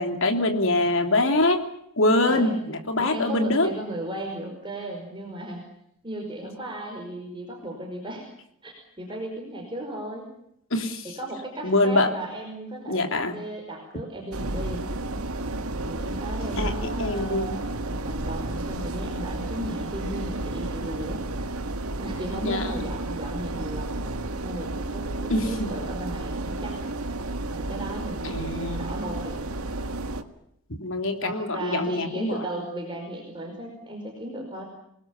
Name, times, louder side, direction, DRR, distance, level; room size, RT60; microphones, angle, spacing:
voice 1, 0.0-1.6 2.0-3.7 10.7-11.0 11.6-12.1 12.9-13.4 16.6-16.7 17.0-17.6 22.4-22.8 25.3-25.7 28.2-28.9 30.8-32.4, left 2 dB, 60° left, 5 dB, 3.4 m, -24 dB
voice 2, 3.0-5.6 6.0-8.3 8.6-10.3 11.0-13.1 13.3-14.8 15.8-21.2 22.0-24.1 24.4-26.8 27.5-29.4 31.2-34.7, right 1 dB, 20° right, 0 dB, 5.1 m, -36 dB
sound 1, 14.3-30.2, right 2 dB, 80° right, 1.8 m, -32 dB
27.5 x 20.0 x 7.2 m, 0.77 s
head